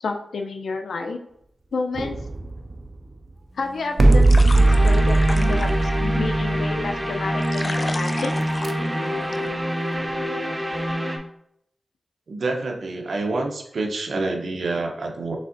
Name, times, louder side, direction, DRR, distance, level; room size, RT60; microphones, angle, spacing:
voice 1, 0.0-1.2 1.7-2.2 3.5-8.4, left 4 dB, 90° left, 5 dB, 0.5 m, -30 dB
sound 1, 1.9-3.3 4.0-7.3 8.4-8.7, right 2 dB, 55° right, 0.4 m, -19 dB
sound 2, 3.6-9.5, left 2 dB, 40° left, 0.4 m, -36 dB
sound 3, 4.5-11.2, equal, 15° right, 0.7 m, -26 dB
voice 2, 12.3-15.4, right 3 dB, 75° right, 2 dB, 0.8 m, -27 dB
5.2 x 3.5 x 2.6 m, 0.75 s
wide cardioid pair, 70°, 0 cm